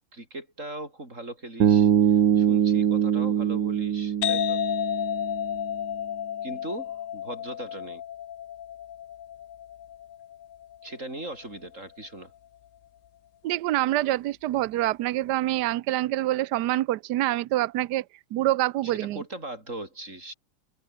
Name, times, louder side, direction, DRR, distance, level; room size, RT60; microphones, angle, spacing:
voice 1, 0.1-4.6 6.4-8.0 10.8-12.3 18.8-20.3, right 2 dB, 35° right, 6.3 m, -39 dB
Bass guitar, 1.6-5.7, right 9 dB, 60° right, 2.0 m, -23 dB
sound 1, 4.2-11.7, left 11 dB, 75° left, 0.7 m, -32 dB
voice 2, 13.4-18.0 18.3-19.2, right 15 dB, 75° right, 1.0 m, -26 dB
omnidirectional pair, 2.4 m